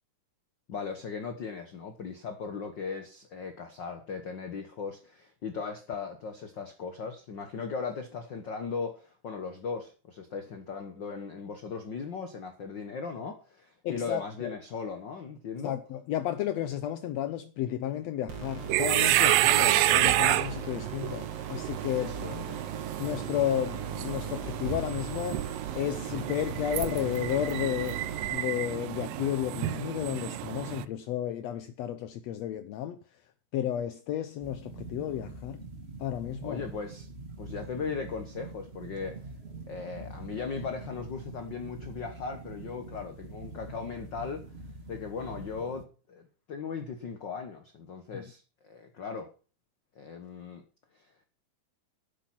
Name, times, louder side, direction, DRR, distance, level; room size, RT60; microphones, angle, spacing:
voice 1, 0.7-15.8 22.0-22.6 36.4-37.1 37.4-39.2 39.7-44.4 44.9-46.2 46.5-49.3 49.9-50.6 50.9-51.0, left 5 dB, 60° left, 1.1 m, -38 dB
voice 2, 13.8-14.5 15.6-22.2 23.0-25.4 25.7-28.0 28.3-33.0 33.5-35.7 36.0-36.6 48.1-48.2, left 11 dB, 80° left, 1.5 m, -32 dB
sound 1, 18.3-28.3, right 6 dB, 50° right, 3.3 m, -39 dB
sound 2, 18.6-30.9, right 14 dB, 80° right, 2.4 m, -29 dB
sound 3, 34.4-45.8, right 2 dB, 30° right, 1.3 m, -44 dB
12.0 x 8.2 x 6.1 m
omnidirectional pair, 4.0 m